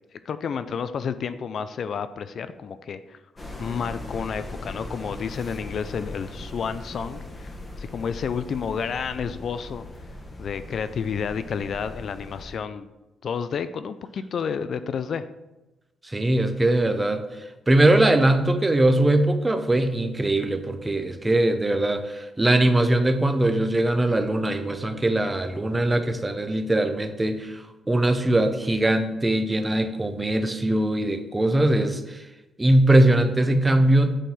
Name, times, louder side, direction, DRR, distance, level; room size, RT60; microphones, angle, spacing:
voice 1, 0.3-3.2 3.6-9.8 10.4-12.9 13.2-15.3, left 6 dB, 50° left, 12 dB, 0.3 m, -30 dB
sound 1, 3.4-12.6, left 2 dB, 20° left, 0.9 m, -39 dB
voice 2, 16.0-17.2 17.7-32.2 32.6-34.2, right 1 dB, 15° right, 8 dB, 0.5 m, -21 dB
8.2 x 3.7 x 4.2 m, 1.0 s
cardioid pair, 135°, 0 cm